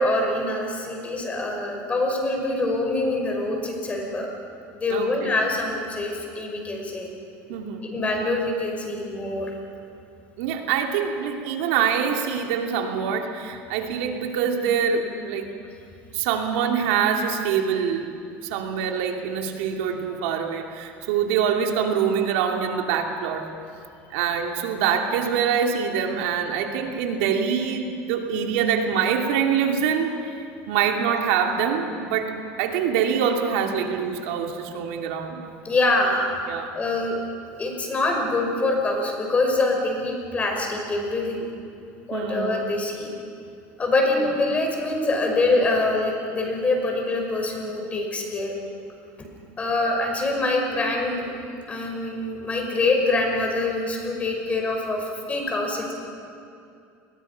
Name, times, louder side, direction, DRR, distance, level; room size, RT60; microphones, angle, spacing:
voice 1, 0.0-4.3 4.7-7.1 7.9-9.5 35.6-36.3 36.7-37.2 37.6-41.4 42.1-43.1 43.8-48.6 49.6-51.3 51.7-55.9, left 2 dB, 20° left, 2 dB, 5.6 m, -24 dB
voice 2, 4.9-5.4 7.5-7.8 10.4-15.5 16.1-18.1 18.5-23.5 24.1-35.4 36.5-36.7 42.1-42.7 44.2-44.3, right 7 dB, 85° right, 3 dB, 2.6 m, -25 dB
29.5 x 21.5 x 5.8 m, 2.5 s
cardioid pair, 135°, 6 cm